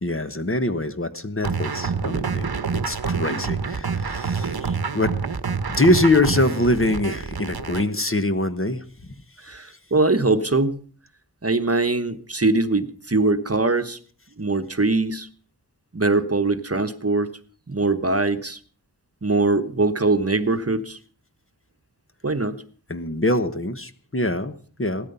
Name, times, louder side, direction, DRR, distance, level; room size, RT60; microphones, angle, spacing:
voice 1, 0.0-2.5 2.7-5.1 5.7-9.1 22.9-25.1, left 1 dB, 35° left, 10 dB, 1.3 m, -24 dB
sound 1, 1.4-7.8, right 5 dB, 70° right, 1.1 m, -27 dB
voice 2, 9.4-10.8 11.4-14.0 14.4-15.3 15.9-17.3 17.7-18.6 19.2-21.0 22.2-22.6, right 3 dB, 35° right, 10 dB, 1.1 m, -22 dB
17.0 x 13.5 x 5.6 m, 0.44 s
wide cardioid pair, 55°, 39 cm